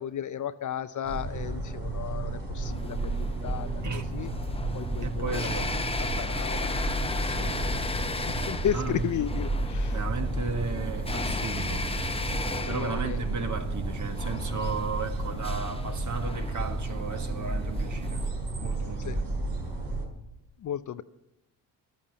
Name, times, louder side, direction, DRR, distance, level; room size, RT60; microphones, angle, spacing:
voice 1, 0.0-4.3 4.7-5.5 6.0-7.0 7.4-7.6 8.3-10.0 12.7-13.2 19.0-19.2 20.6-21.0, left 10 dB, 40° left, 0.6 m, -34 dB
sound 1, 1.0-20.0, right 2 dB, 65° right, 4.5 m, -32 dB
sound 2, 2.6-18.3, left 2 dB, 15° left, 0.9 m, -35 dB
voice 2, 5.0-5.8 7.1-7.8 8.7-9.1 9.9-11.9 12.7-18.3 18.6-19.3, right 5 dB, 40° right, 1.8 m, -35 dB
12.0 x 8.7 x 7.4 m
hypercardioid pair, 55°, 45 cm